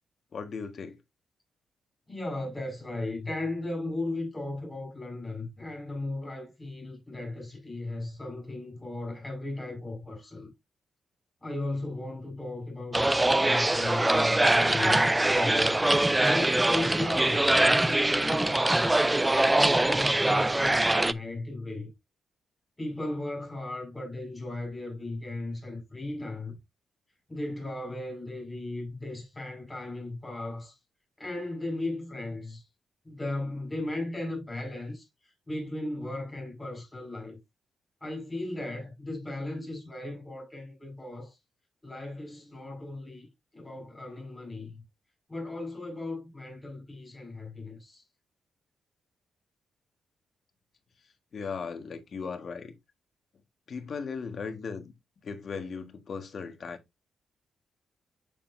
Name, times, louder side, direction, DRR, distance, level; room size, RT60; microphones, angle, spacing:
voice 1, 0.3-1.0 51.3-52.7 53.7-54.9 55.2-56.8, left 5 dB, 40° left, 1.5 m, -37 dB
voice 2, 2.1-10.5 11.4-15.8 16.2-19.1 19.5-21.9 22.8-26.6 27.3-30.7 31.2-32.6 33.1-35.0 35.5-37.4 38.0-41.4 41.8-43.3 43.5-44.7 45.3-48.0, left 2 dB, 10° left, 5.1 m, -36 dB
sound 1, 12.9-21.1, right 1 dB, 10° right, 0.3 m, -23 dB
7.6 x 6.8 x 2.6 m
wide cardioid pair, 155°, 0 cm